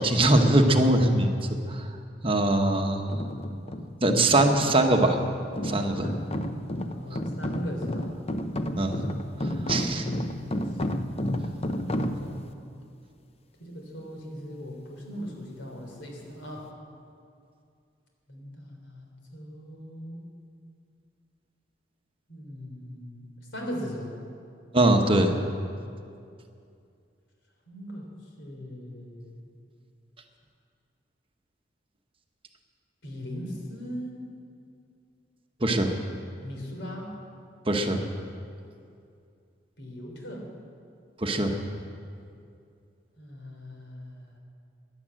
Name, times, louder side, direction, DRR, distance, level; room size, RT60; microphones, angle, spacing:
voice 1, 0.0-1.4 1.7-1.9 2.2-3.0 4.0-5.2 5.6-6.1 8.8-9.0 9.7-10.0 24.7-25.3 35.6-35.9 37.7-38.0 41.2-41.6, right 1 dB, 30° right, 4 dB, 1.1 m, -22 dB
sound 1, 3.1-12.5, left 1 dB, 35° left, 0.7 m, -32 dB
voice 2, 6.0-8.1 9.4-12.5 13.6-16.7 18.3-20.2 22.3-24.1 27.7-28.1 28.4-29.5 33.0-34.2 36.4-37.2 39.8-40.5 43.2-44.4, equal, 85° left, 0 dB, 3.5 m, -40 dB
14.0 x 11.0 x 8.8 m, 2.4 s
head